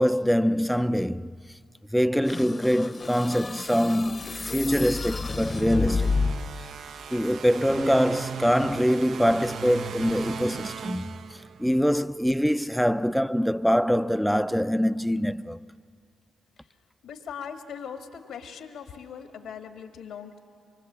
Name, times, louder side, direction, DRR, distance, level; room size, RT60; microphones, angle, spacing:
voice 1, 0.0-1.3 1.9-6.3 6.6-6.7 7.1-11.1 11.6-15.6, equal, ahead, 0.5 m, -24 dB
sound 1, 2.3-6.6, left 4 dB, 35° left, 0.9 m, -30 dB
sound 2, 5.2-11.8, right 7 dB, 65° right, 0.5 m, -37 dB
voice 2, 17.0-20.4, left 7 dB, 80° left, 1.7 m, -40 dB
25.0 x 23.5 x 7.5 m
supercardioid pair, 60°, 0 cm